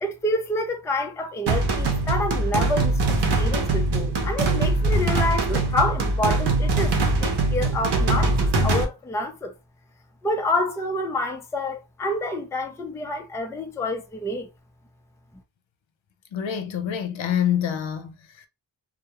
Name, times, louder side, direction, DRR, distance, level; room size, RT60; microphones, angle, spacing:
voice 1, 0.0-9.5 10.2-14.5, left 1 dB, 5° left, 0.3 m, -28 dB
sound 1, 1.5-8.8, right 2 dB, 60° right, 0.7 m, -22 dB
voice 2, 16.3-18.5, left 9 dB, 80° left, 0.6 m, -26 dB
2.3 x 2.0 x 2.8 m
wide cardioid pair, 145°, 46 cm